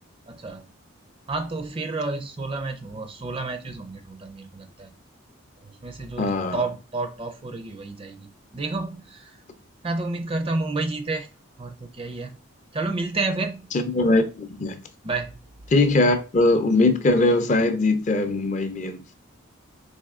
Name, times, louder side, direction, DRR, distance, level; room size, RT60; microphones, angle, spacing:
voice 1, 0.3-0.7 1.3-4.9 5.6-9.3 9.8-11.3 11.6-12.4 12.7-13.7 15.0-15.4, right 3 dB, 25° right, 0.4 m, -30 dB
voice 2, 6.2-6.7 13.7-14.8 15.7-19.0, left 2 dB, 35° left, 0.5 m, -21 dB
4.2 x 3.0 x 3.5 m
head